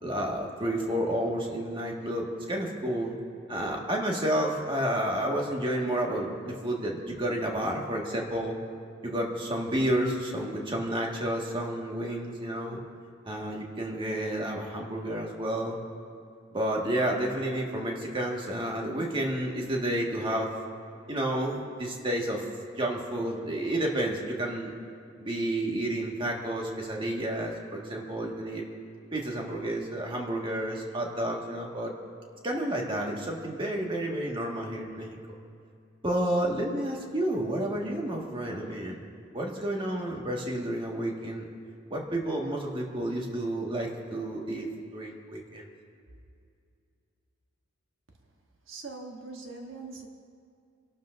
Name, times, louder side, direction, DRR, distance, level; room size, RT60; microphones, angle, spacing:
voice 1, 0.0-3.2 3.5-8.6 9.0-12.8 13.2-15.8 16.5-20.5 21.1-22.5 22.8-24.7 25.2-28.6 29.1-31.9 32.4-35.2 36.0-39.0 39.3-41.4 41.9-44.7 44.9-45.6, right 1 dB, 25° right, -1 dB, 1.7 m, -30 dB
voice 2, 48.7-50.1, right 3 dB, 75° right, 2 dB, 1.2 m, -41 dB
29.0 x 12.0 x 2.6 m, 2.4 s
head